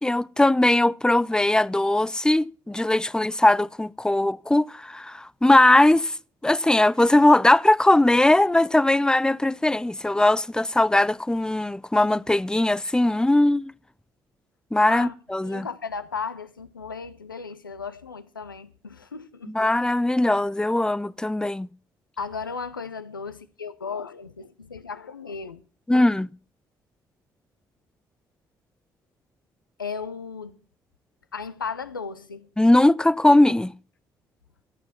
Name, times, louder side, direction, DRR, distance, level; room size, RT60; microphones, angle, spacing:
voice 1, 0.0-6.1 6.4-13.7 14.7-15.7 19.5-21.7 25.9-26.3 32.6-33.7, left 1 dB, 5° left, 0.5 m, -20 dB
voice 2, 15.4-19.5 22.2-25.6 29.8-30.6 31.3-32.5, left 5 dB, 90° left, 0.6 m, -35 dB
13.0 x 8.8 x 5.8 m
figure-of-eight pair, 40°, 11 cm